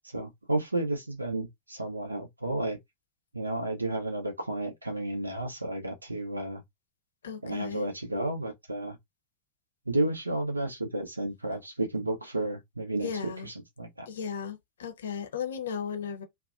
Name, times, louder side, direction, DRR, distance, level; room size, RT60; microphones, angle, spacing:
voice 1, 0.1-2.8 3.3-6.6 7.4-9.0 9.9-13.1 13.8-14.1, right 2 dB, 80° right, 0.6 m, -32 dB
voice 2, 7.2-7.9 13.0-13.5 14.1-16.2, left 7 dB, 65° left, 0.6 m, -35 dB
2.6 x 2.1 x 2.4 m
figure-of-eight pair, 90°, 0 cm